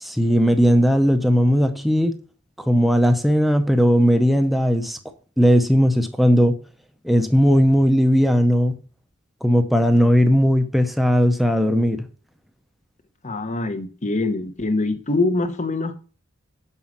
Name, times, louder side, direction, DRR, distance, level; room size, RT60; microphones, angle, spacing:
voice 1, 0.0-2.1 2.6-5.0 5.4-6.6 7.0-8.8 9.4-12.0, equal, ahead, 0.7 m, -17 dB
voice 2, 13.2-15.9, left 2 dB, 35° left, 0.9 m, -24 dB
6.2 x 5.6 x 5.9 m
head